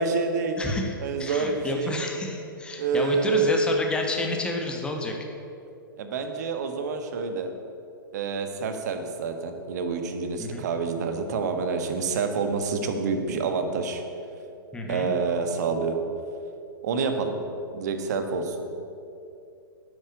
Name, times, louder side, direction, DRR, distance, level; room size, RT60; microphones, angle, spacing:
voice 1, 0.0-0.6 1.0-1.9 2.8-3.5 6.0-7.5 8.1-14.0 14.9-15.9 16.8-17.4 17.7-18.7, right 4 dB, 50° right, 6 dB, 1.5 m, -27 dB
voice 2, 0.6-0.9 1.2-5.1 10.4-10.6 14.7-15.1, left 2 dB, 10° left, 2 dB, 1.6 m, -30 dB
10.0 x 9.1 x 8.6 m, 2.7 s
figure-of-eight pair, 110°, 12 cm